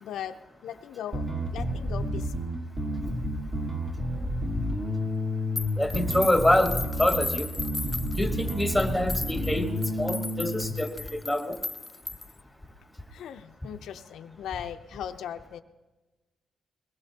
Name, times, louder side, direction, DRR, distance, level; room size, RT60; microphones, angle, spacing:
voice 1, 0.0-1.3 1.5-2.5 13.1-15.6, left 9 dB, 80° left, 7 dB, 0.5 m, -38 dB
Bass guitar, 1.1-10.7, equal, 35° right, 1.4 m, -30 dB
sound 1, 5.6-12.4, left 3 dB, 15° left, 0.4 m, -36 dB
voice 2, 5.8-6.7 7.0-7.5 8.2-11.6, left 1 dB, ahead, 4 dB, 1.3 m, -26 dB
22.0 x 19.5 x 2.8 m, 1.2 s
cardioid pair, 140°, 0 cm